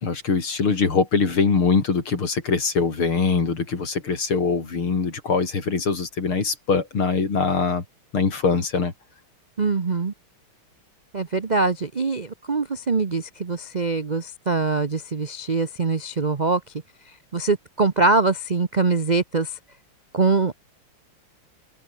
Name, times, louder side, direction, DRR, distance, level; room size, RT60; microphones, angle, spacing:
voice 1, 0.0-7.8 8.1-8.9, left 4 dB, 80° left, 4.7 m, -22 dB
voice 2, 9.6-10.1 11.1-16.6 17.3-19.6 20.1-20.6, right 4 dB, 85° right, 0.4 m, -23 dB
open air
omnidirectional pair, 2.3 m